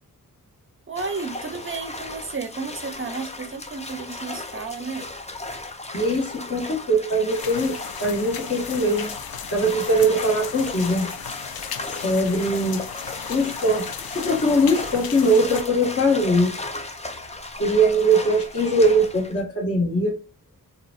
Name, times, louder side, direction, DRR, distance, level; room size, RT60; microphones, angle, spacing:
voice 1, 0.9-5.1, right 4 dB, 35° right, 0.5 m, -32 dB
sound 1, 1.0-19.4, left 2 dB, 20° left, 0.5 m, -36 dB
voice 2, 5.9-9.1 9.5-11.1 12.0-12.8 13.3-13.9 14.1-16.5 17.6-20.2, right 1 dB, 40° left, 1.3 m, -21 dB
sound 2, 7.3-15.6, left 8 dB, 80° left, 0.5 m, -36 dB
3.8 x 2.4 x 2.4 m
wide cardioid pair, 110°, 36 cm